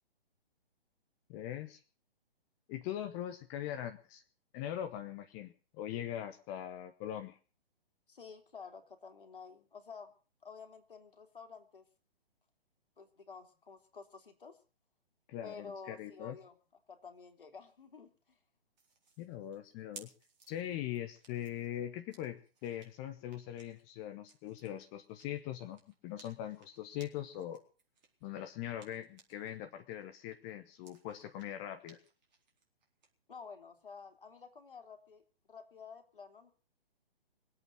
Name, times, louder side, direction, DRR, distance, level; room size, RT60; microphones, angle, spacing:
voice 1, 1.3-1.8 2.7-4.2 4.5-7.4 15.3-16.4 19.2-20.1 20.5-27.6 28.2-32.0, left 11 dB, 15° left, 8 dB, 0.9 m, -41 dB
voice 2, 8.1-10.1 10.4-11.8 13.0-14.6 15.4-16.6 16.9-18.4 33.3-35.2 35.5-36.5, left 5 dB, 60° left, 5 dB, 3.4 m, -51 dB
sound 1, 18.8-29.6 29.9-33.1, right 4 dB, 45° right, 4.2 m, -61 dB
22.5 x 8.5 x 7.6 m, 0.38 s
figure-of-eight pair, 130°, 30 cm